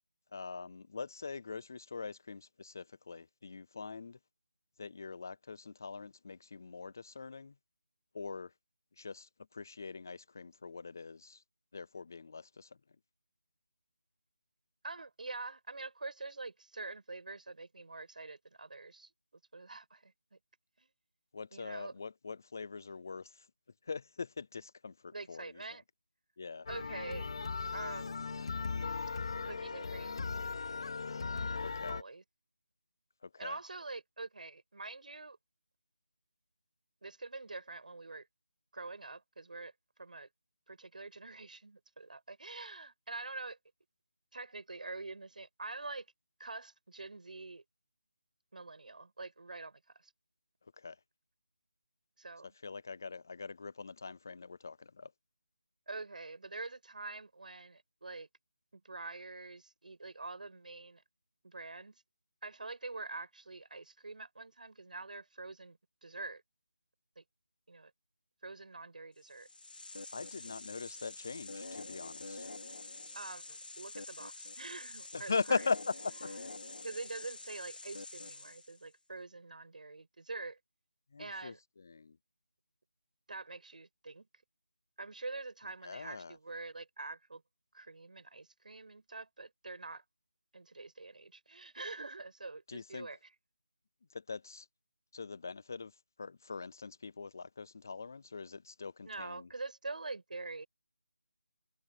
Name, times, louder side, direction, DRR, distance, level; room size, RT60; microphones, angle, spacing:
voice 1, 0.3-4.2 4.8-7.5 8.1-8.5 9.0-11.4 11.7-12.7 21.3-23.5 23.9-25.5 26.4-26.7 31.6-32.0 33.2-33.6 50.8-51.0 52.6-55.1 70.1-72.5 75.1-76.3 81.1-81.5 81.9-82.2 85.8-86.4 92.7-93.1 94.1-94.7 95.1-95.9 96.2-99.5, left 4 dB, 20° left, 0.3 m, -41 dB
voice 2, 14.8-19.1 19.5-20.1 20.8-20.9 21.5-21.9 25.1-25.8 26.7-27.3 27.7-28.2 29.4-30.2 31.9-32.2 33.4-35.4 37.0-38.3 38.7-39.7 40.0-40.3 40.7-43.6 44.3-46.1 46.4-47.6 48.5-50.1 52.2-52.5 55.9-58.3 58.7-61.0 61.4-62.0 62.4-66.4 67.2-67.3 67.7-67.9 68.4-69.5 73.1-75.6 76.8-80.6 81.2-81.6 83.3-84.3 85.0-87.4 87.7-90.0 90.5-93.3 99.0-100.7, right 3 dB, 60° right, 5.7 m, -45 dB
sound 1, 26.7-32.0, left 4 dB, 35° left, 2.3 m, -38 dB
sound 2, 69.3-78.8, left 3 dB, 75° left, 5.7 m, -47 dB
open air
figure-of-eight pair, 175°, 5 cm